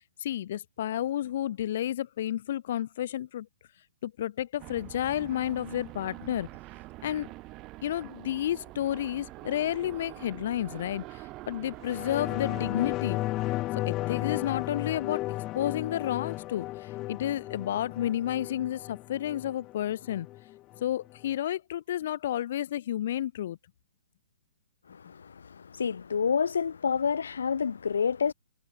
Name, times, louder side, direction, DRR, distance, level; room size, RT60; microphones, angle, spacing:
voice 1, 0.0-3.5 4.0-6.5 7.0-7.3 7.8-13.2 13.9-20.3 20.8-23.6, left 11 dB, 50° left, 1.5 m, -31 dB
sound 1, 4.6-13.0, right 20 dB, 30° right, 6.2 m, -45 dB
sound 2, 11.8-20.8 21.2-21.3, left 17 dB, 25° left, 0.7 m, -34 dB
voice 2, 24.9-28.3, left 6 dB, 65° left, 1.5 m, -29 dB
figure-of-eight pair, 120°, 0 cm